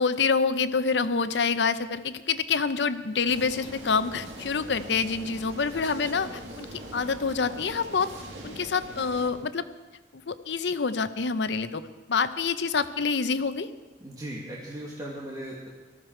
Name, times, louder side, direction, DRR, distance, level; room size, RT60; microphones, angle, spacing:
voice 1, 0.0-8.1 8.4-9.6 10.1-11.8 12.1-13.7, left 5 dB, 75° left, 12 dB, 0.7 m, -27 dB
sound 1, 3.3-9.3, right 1 dB, 85° right, 2.3 m, -42 dB
voice 2, 14.0-15.7, right 1 dB, 20° right, -4 dB, 1.8 m, -38 dB
18.5 x 13.5 x 4.5 m, 1.2 s
head